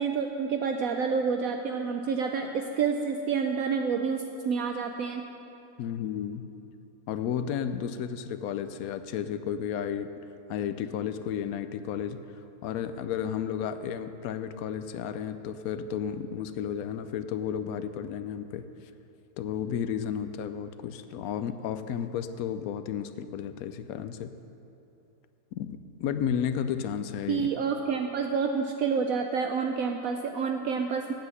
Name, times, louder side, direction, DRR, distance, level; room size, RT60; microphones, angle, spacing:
voice 1, 0.0-5.2 27.3-31.1, right 5 dB, 70° right, 4 dB, 1.0 m, -28 dB
voice 2, 5.8-6.4 7.1-10.1 10.5-12.2 12.6-18.7 19.4-24.3 25.5-27.5, left 8 dB, 70° left, 10 dB, 1.0 m, -32 dB
8.8 x 7.8 x 8.1 m, 2.8 s
omnidirectional pair, 1.7 m